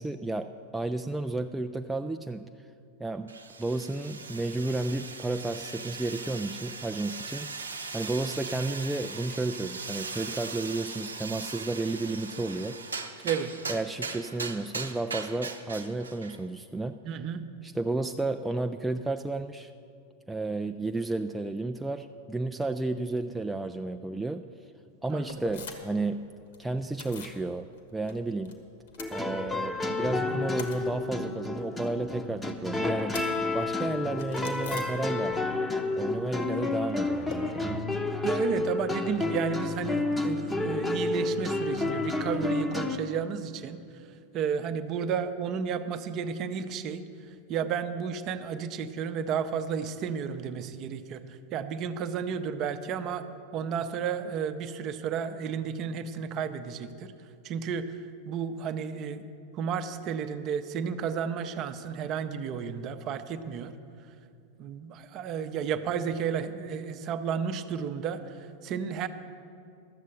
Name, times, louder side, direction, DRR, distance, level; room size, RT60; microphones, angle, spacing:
voice 1, 0.0-2.5 3.0-3.3 3.6-7.5 7.9-12.8 13.7-17.0 17.6-19.7 20.3-24.4 25.0-26.2 26.6-28.6 29.1-35.4 36.0-37.8, right 2 dB, 5° right, 6 dB, 0.3 m, -32 dB
sound 1, 3.3-16.4, right 4 dB, 75° right, 0.7 m, -39 dB
voice 2, 17.0-17.4 25.1-25.4 30.3-30.4 38.2-43.8 44.3-47.0 47.5-53.2 53.5-57.1 57.4-58.0 58.3-59.2 59.5-63.7 64.6-69.1, right 7 dB, 35° right, 10 dB, 0.7 m, -32 dB
sound 2, 25.3-26.1 26.3-27.4 27.8-28.5 28.8-29.8 30.1-35.5 35.8-37.4, left 5 dB, 60° left, 1.4 m, -45 dB
sound 3, 29.0-43.0, left 2 dB, 10° left, 0.8 m, -30 dB
12.5 x 7.4 x 8.0 m, 2.5 s
figure-of-eight pair, 90°, 0 cm